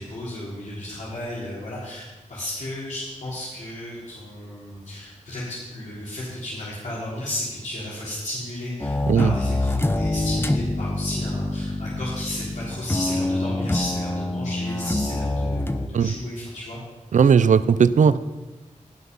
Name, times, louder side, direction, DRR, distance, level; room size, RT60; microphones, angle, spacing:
voice 1, 0.0-16.8, left 1 dB, 70° left, -8 dB, 3.7 m, -33 dB
sound 1, 8.8-15.9, left 2 dB, 15° left, 0.7 m, -26 dB
voice 2, 17.1-18.2, right 6 dB, 75° right, 15 dB, 0.5 m, -17 dB
17.5 x 5.9 x 5.5 m, 1.1 s
cardioid pair, 60°, 13 cm